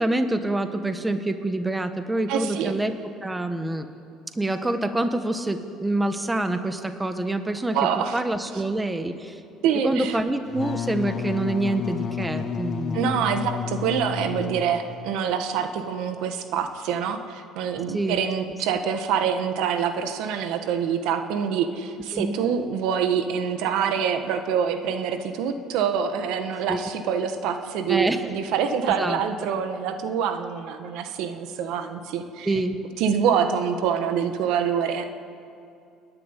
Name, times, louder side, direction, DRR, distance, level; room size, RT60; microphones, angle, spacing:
voice 1, 0.0-3.9 4.3-7.8 8.1-9.4 9.8-13.2 17.9-18.2 22.1-22.4 26.7-26.8 27.9-28.2 28.9-29.2 32.4-32.8, right 2 dB, 10° right, 8 dB, 1.3 m, -26 dB
voice 2, 2.3-2.7 7.7-8.2 9.6-10.2 12.9-32.5 33.0-35.0, right 7 dB, 75° right, 7 dB, 1.7 m, -25 dB
Wind instrument woodwind instrument, 10.5-15.0, left 7 dB, 45° left, 1.2 m, -31 dB
28.5 x 11.0 x 9.9 m, 2.5 s
cardioid pair, 115°, 0 cm